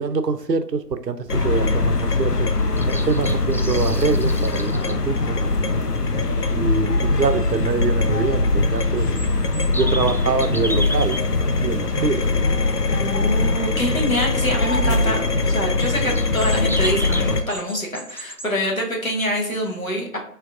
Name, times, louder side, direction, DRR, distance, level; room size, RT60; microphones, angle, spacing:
voice 1, 0.0-2.5 2.9-5.4 6.5-9.1 9.7-12.3, right 5 dB, 85° right, 10 dB, 0.6 m, -25 dB
sound 1, 1.3-17.4, left 3 dB, 70° left, 0.7 m, -21 dB
sound 2, 2.6-4.9 8.8-11.2 15.8-18.5, equal, 5° left, 0.3 m, -33 dB
voice 2, 13.0-20.2, equal, 55° left, -1 dB, 1.4 m, -25 dB
4.5 x 3.4 x 2.5 m, 0.68 s
figure-of-eight pair, 180°, 49 cm